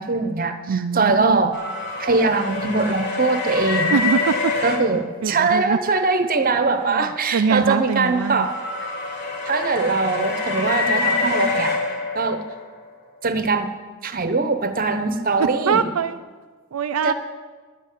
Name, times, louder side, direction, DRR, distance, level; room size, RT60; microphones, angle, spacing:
voice 1, 0.0-1.6 2.0-4.0 4.6-8.6 9.4-11.7 12.1-12.4 13.2-13.7 14.0-15.9 17.0-17.1, right 3 dB, 40° right, 10 dB, 0.9 m, -21 dB
voice 2, 0.7-1.5 3.9-4.5 5.2-5.8 6.7-7.1 7.3-8.5 15.4-16.2 16.7-17.1, right 6 dB, 75° right, 9 dB, 0.4 m, -23 dB
sound 1, 1.5-4.8 7.2-12.7, left 4 dB, 50° left, 2.5 m, -26 dB
11.5 x 8.2 x 9.1 m, 1.4 s
head